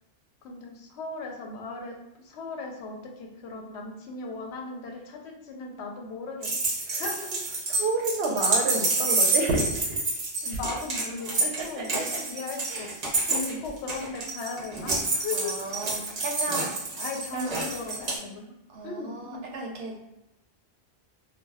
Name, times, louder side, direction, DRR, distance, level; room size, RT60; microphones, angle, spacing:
voice 1, 0.4-6.5 7.0-7.3 10.4-11.3 11.6-15.6 16.9-18.5 18.8-19.5, left 3 dB, 85° left, 2 dB, 0.8 m, -37 dB
sound 1, 6.4-18.2, right 2 dB, 45° right, 0.8 m, -28 dB
voice 2, 7.7-10.0 11.4-12.2 12.7-12.9 13.3-13.6 15.3-16.9 17.3-17.6 18.7-20.1, right 3 dB, 70° right, 1 dB, 0.8 m, -32 dB
2.2 x 2.2 x 3.3 m, 0.91 s
omnidirectional pair, 1.1 m